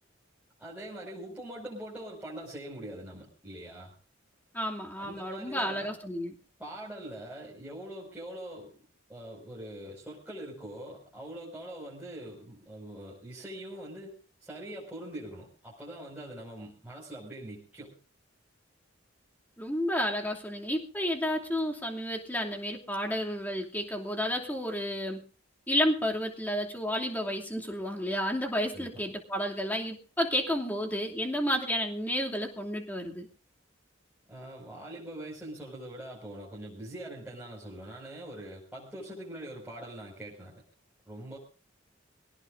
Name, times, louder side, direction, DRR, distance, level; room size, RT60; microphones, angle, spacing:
voice 1, 0.6-3.9 5.0-5.9 6.6-8.7 9.1-14.1 14.4-17.9 28.7-29.0 34.3-40.6 41.1-41.4, right 1 dB, 10° right, -8 dB, 5.6 m, -43 dB
voice 2, 4.5-6.3 19.6-25.2 25.7-33.3, equal, 10° left, 0 dB, 2.7 m, -31 dB
25.5 x 18.0 x 2.7 m, 0.37 s
head